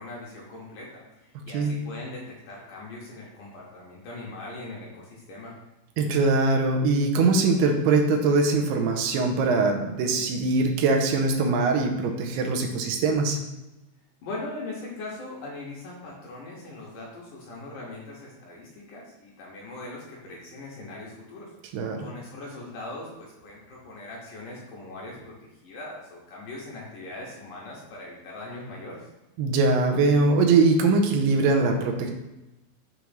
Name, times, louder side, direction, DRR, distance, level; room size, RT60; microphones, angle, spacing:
voice 1, 0.0-5.6 14.2-21.5 22.0-29.1, left 2 dB, 70° left, -4 dB, 2.2 m, -40 dB
voice 2, 6.0-13.4 21.7-22.1 29.4-32.1, right 3 dB, 85° right, 3 dB, 2.7 m, -22 dB
7.0 x 3.1 x 5.0 m, 1.0 s
omnidirectional pair, 4.6 m